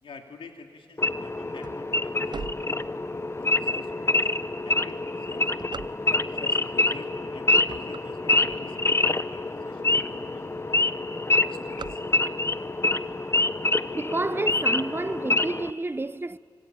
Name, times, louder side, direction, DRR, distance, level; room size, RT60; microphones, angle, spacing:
voice 1, 0.0-2.8 3.4-5.5 6.1-10.9 11.4-12.0, left 4 dB, 85° left, 2.7 m, -47 dB
Wild animals / Idling, 1.0-15.7, left 2 dB, 30° left, 1.0 m, -26 dB
sound 1, 1.6-3.4 4.0-4.1 4.7-6.4 7.1-7.3 7.6-9.1 9.6-9.7 9.9-10.0 10.3-10.7 10.9-12.6, right 5 dB, 55° right, 0.6 m, -42 dB
voice 2, 13.9-16.4, right 2 dB, 25° right, 0.7 m, -30 dB
26.5 x 24.5 x 9.2 m
cardioid pair, 50°, 9 cm